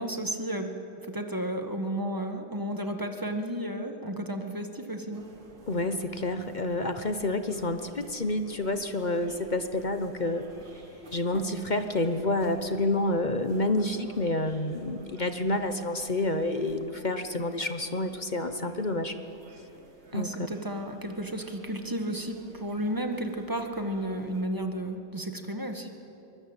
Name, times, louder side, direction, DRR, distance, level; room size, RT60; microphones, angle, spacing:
voice 1, 0.0-5.3 11.3-11.5 20.1-25.9, right 1 dB, 10° right, 5 dB, 1.6 m, -33 dB
sound 1, 5.1-24.4, right 2 dB, 75° right, 3.1 m, -52 dB
voice 2, 5.7-10.4 11.1-19.1 20.1-20.5, left 2 dB, 35° left, 8 dB, 0.8 m, -29 dB
24.0 x 20.5 x 8.9 m, 2.9 s
omnidirectional pair, 1.9 m